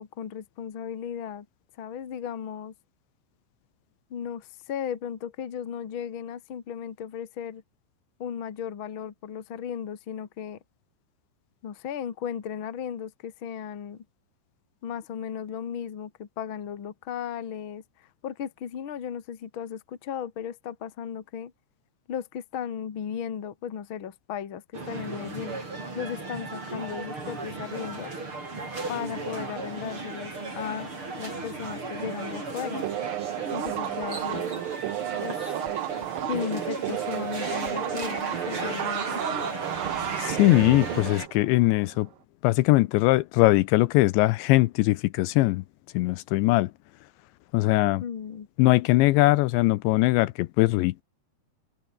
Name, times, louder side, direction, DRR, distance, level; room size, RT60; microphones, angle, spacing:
voice 1, 0.0-1.4 1.8-2.7 4.1-7.6 8.2-10.6 11.6-14.0 14.8-21.5 22.1-25.6 25.9-28.1 28.9-30.9 31.2-32.9 33.5-34.5 35.2-35.4 36.3-39.2 48.0-48.5, left 8 dB, 45° left, 1.7 m, -35 dB
sound 1, 24.7-41.3, right 3 dB, 25° right, 6.5 m, -35 dB
sound 2, 32.8-42.0, right 15 dB, 75° right, 2.1 m, -32 dB
voice 2, 40.2-42.1 42.4-45.6 45.9-46.7 47.5-48.0 48.6-51.0, left 19 dB, 80° left, 2.9 m, -21 dB
omnidirectional pair, 5.4 m